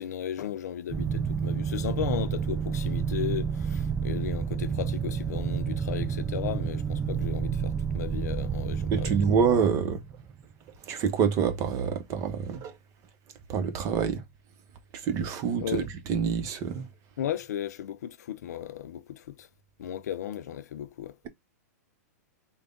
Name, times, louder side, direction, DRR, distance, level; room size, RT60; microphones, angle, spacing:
voice 1, 0.0-9.3 15.6-15.9 17.2-19.5 19.8-21.2, left 10 dB, 70° left, 0.6 m, -35 dB
sound 1, 0.9-10.5, right 6 dB, 15° right, 0.5 m, -30 dB
voice 2, 8.9-10.0 10.8-12.8 13.5-14.2 14.9-16.9, right 6 dB, 35° right, 0.9 m, -27 dB
3.4 x 2.2 x 3.7 m
hypercardioid pair, 120°, 9 cm